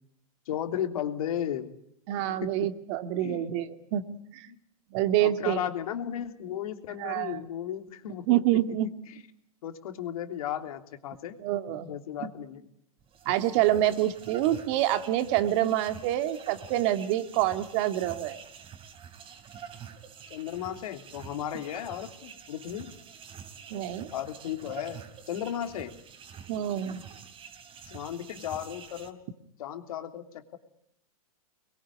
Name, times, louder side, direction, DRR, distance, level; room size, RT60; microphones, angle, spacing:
voice 1, 0.5-1.7 2.4-2.5 3.2-3.5 4.5-4.6 5.2-8.6 9.6-11.4 11.9-12.7 20.3-23.0 24.1-25.9 27.9-29.2 29.6-30.6, left 10 dB, 70° left, 7 dB, 3.2 m, -35 dB
voice 2, 2.1-4.0 4.3-4.5 4.9-5.6 7.0-7.4 8.3-8.9 11.4-11.9 12.2-12.3 13.3-18.4 23.7-24.1 26.5-27.0, right 13 dB, 50° right, 9 dB, 2.3 m, -27 dB
sound 1, 13.0-29.1, right 7 dB, 30° right, 3.3 m, -47 dB
25.5 x 22.0 x 9.8 m, 0.71 s
hypercardioid pair, 125°, 19 cm